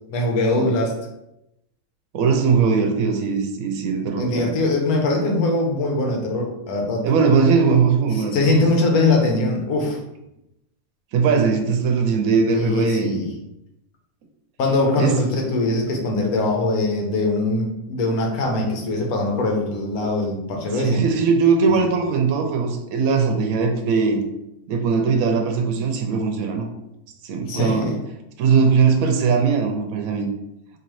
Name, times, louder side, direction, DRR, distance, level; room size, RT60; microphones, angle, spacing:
voice 1, 0.1-0.9 4.2-7.0 8.1-10.0 12.5-13.3 14.6-21.0 21.7-21.8 27.5-27.9, left 2 dB, 85° left, 1 dB, 1.3 m, -22 dB
voice 2, 2.1-4.5 7.0-8.6 11.1-13.2 15.0-15.2 20.7-24.2 24.7-26.7 27.2-27.9 28.4-30.3, right 5 dB, 75° right, 3 dB, 1.0 m, -20 dB
3.9 x 2.9 x 3.0 m, 0.86 s
omnidirectional pair, 1.5 m